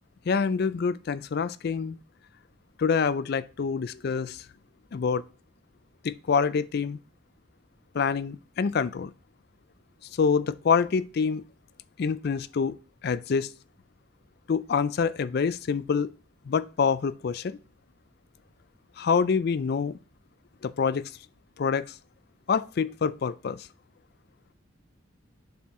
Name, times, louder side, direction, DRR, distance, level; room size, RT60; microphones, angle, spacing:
voice 1, 0.3-2.0 2.8-4.4 4.9-5.2 6.0-7.0 7.9-9.1 10.2-11.4 12.0-12.8 13.0-13.5 14.5-16.1 16.5-17.6 19.0-20.0 20.6-21.1 21.6-21.8 22.5-23.7, left 5 dB, 50° left, 0.4 m, -26 dB
7.1 x 4.4 x 3.6 m
head